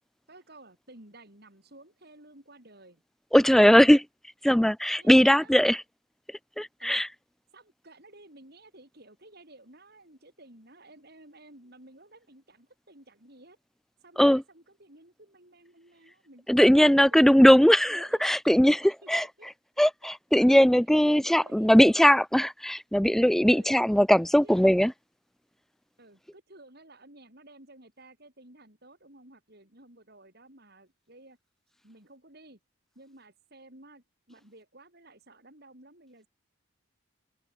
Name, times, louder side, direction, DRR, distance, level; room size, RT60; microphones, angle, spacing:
voice 1, 0.3-3.0 5.0-5.6 6.8-7.0 7.5-13.6 14.0-16.5 17.9-18.2 18.8-19.5 20.0-20.1 20.5-20.6 21.1-22.2 23.5-23.7 24.4-24.5 26.0-31.4 31.8-32.6 33.0-36.3, right 2 dB, 50° right, 7.5 m, -53 dB
voice 2, 3.3-4.0 4.4-5.8 6.6-7.1 14.2-14.4 16.5-18.8 19.1-19.2 19.8-24.9, equal, ahead, 0.3 m, -20 dB
open air
head